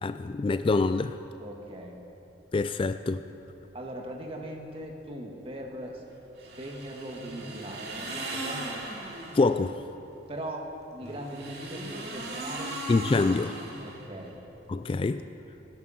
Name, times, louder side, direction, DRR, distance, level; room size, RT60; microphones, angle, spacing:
voice 1, 0.0-1.1 2.5-3.2 9.3-9.8 12.9-13.6 14.7-15.2, left 3 dB, 30° left, 11 dB, 0.3 m, -25 dB
voice 2, 1.4-2.0 3.7-6.0 6.6-8.7 10.3-12.8 13.8-14.3, right 1 dB, 30° right, 1 dB, 1.7 m, -40 dB
sound 1, 6.4-9.5 11.0-14.3, right 1 dB, 65° right, 2.6 m, -38 dB
17.5 x 11.0 x 5.6 m, 2.9 s
head